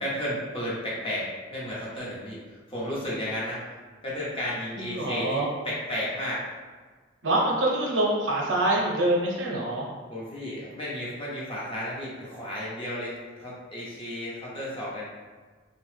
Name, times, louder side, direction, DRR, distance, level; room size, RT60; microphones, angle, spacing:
voice 1, 0.0-2.4 2.7-3.6 4.0-6.4 10.1-15.1, left 1 dB, 30° left, -6 dB, 0.8 m, -33 dB
voice 2, 4.7-5.5 7.2-9.9, right 1 dB, 75° right, -3 dB, 0.7 m, -25 dB
2.9 x 2.2 x 3.2 m, 1.4 s
head